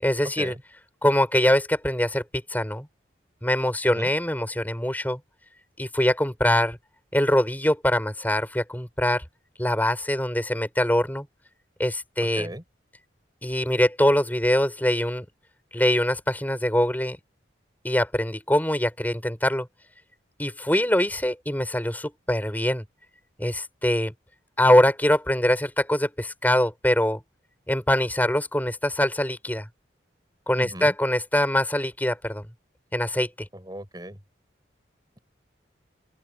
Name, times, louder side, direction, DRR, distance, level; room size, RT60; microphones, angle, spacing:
voice 1, 0.0-0.5 1.0-2.2 2.5-2.9 3.4-5.2 5.8-6.8 7.1-9.2 9.6-11.3 11.8-12.5 13.4-15.2 15.7-17.2 17.8-19.7 20.4-22.8 23.4-24.1 24.6-27.2 27.7-29.7 30.5-32.4 32.9-33.5, left 1 dB, 10° left, 5.5 m, -23 dB
voice 2, 30.5-30.9 33.5-34.2, right 1 dB, 20° right, 6.9 m, -36 dB
open air
head